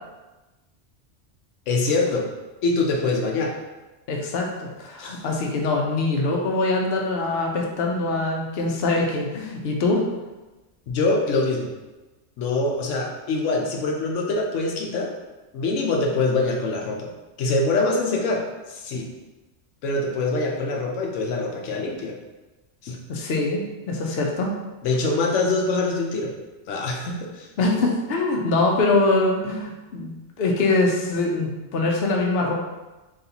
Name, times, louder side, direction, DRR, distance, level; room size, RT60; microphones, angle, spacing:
voice 1, 1.7-2.3 2.6-3.5 5.0-5.2 10.9-11.7 12.4-15.1 15.5-17.1 17.4-18.4 18.7-19.1 19.8-22.1 22.8-23.0 24.8-26.3 26.7-27.5, left 3 dB, 90° left, 0 dB, 1.0 m, -24 dB
voice 2, 4.1-10.0 23.1-24.5 27.6-30.1 30.4-32.5, left 2 dB, 60° left, 0 dB, 0.8 m, -23 dB
4.0 x 3.2 x 2.8 m, 1.1 s
omnidirectional pair, 1.2 m